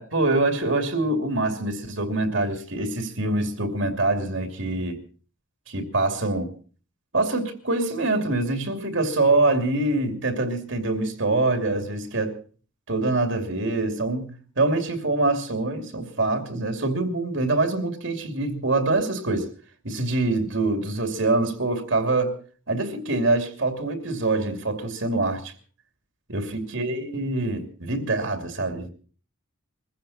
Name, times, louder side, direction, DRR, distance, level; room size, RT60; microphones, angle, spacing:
voice 1, 0.0-5.0 5.7-6.5 7.1-12.3 12.9-19.5 19.8-22.3 22.7-25.5 26.3-28.9, right 2 dB, 65° right, 2.7 m, -25 dB
22.5 x 15.5 x 4.2 m
head